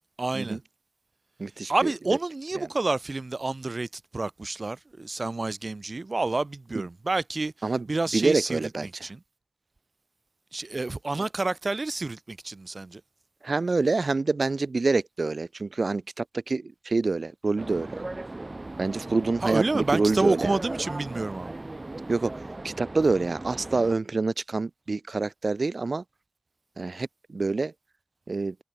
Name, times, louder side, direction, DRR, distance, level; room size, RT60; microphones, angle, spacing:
voice 1, 0.2-0.6 1.7-3.9 4.1-7.5 7.9-9.2 10.5-13.0 19.4-21.5, right 3 dB, 60° right, 0.9 m, -28 dB
voice 2, 1.4-1.9 2.6-2.7 6.8-6.9 7.6-7.9 8.1-9.1 13.4-18.0 18.8-20.5 22.1-26.0 26.8-27.7 28.3-28.6, right 3 dB, 75° right, 1.9 m, -27 dB
sound 1, 17.6-23.9, right 2 dB, 45° right, 3.0 m, -38 dB
wide cardioid pair, 55°, 0 cm